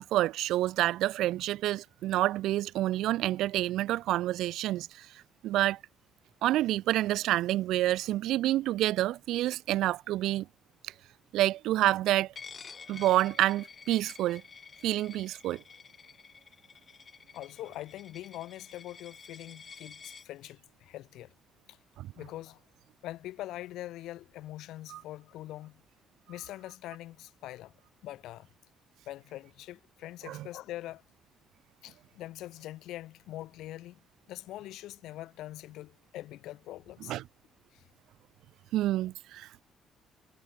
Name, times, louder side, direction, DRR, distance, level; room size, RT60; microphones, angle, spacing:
voice 1, 0.0-5.1 5.4-5.8 6.4-10.5 11.3-12.3 12.9-14.4 14.8-15.6 22.0-22.1 24.9-25.0 30.3-30.5 37.1-37.2 38.7-39.6, right 14 dB, 85° right, 0.4 m, -28 dB
Coin (dropping), 12.4-20.3, left 6 dB, 30° left, 6.7 m, -50 dB
voice 2, 17.3-21.3 21.7-21.8 22.1-22.6 23.0-25.8 26.3-27.7 28.0-28.5 29.0-31.0 31.8-34.0 34.3-37.2 37.7-37.8, left 15 dB, 90° left, 3.3 m, -43 dB
cardioid pair, 150°, 0 cm